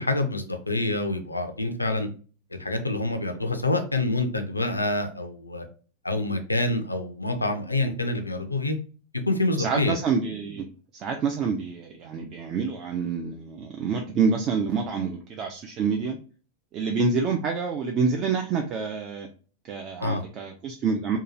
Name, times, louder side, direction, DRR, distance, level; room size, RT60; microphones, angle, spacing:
voice 1, 0.0-2.1 2.5-5.6 6.0-8.8 9.3-10.0 20.0-20.2, left 2 dB, 80° left, 6 dB, 0.4 m, -26 dB
voice 2, 9.6-10.6 10.9-16.2 16.7-19.3 19.7-21.2, right 5 dB, 35° right, 3 dB, 0.3 m, -27 dB
2.8 x 2.2 x 2.5 m, 0.38 s
figure-of-eight pair, 90°, 0 cm